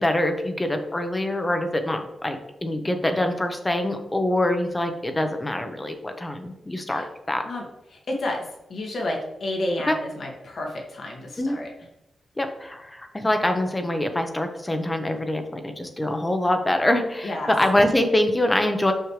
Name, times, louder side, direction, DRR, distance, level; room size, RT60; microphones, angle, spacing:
voice 1, 0.0-7.4 9.9-10.0 11.4-11.6 12.4-18.9, left 1 dB, 15° left, 6 dB, 0.8 m, -24 dB
voice 2, 7.9-8.4 8.7-11.7 17.2-17.5, left 1 dB, 55° left, 0 dB, 1.8 m, -30 dB
6.5 x 6.5 x 3.2 m, 0.90 s
wide cardioid pair, 135°, 0 cm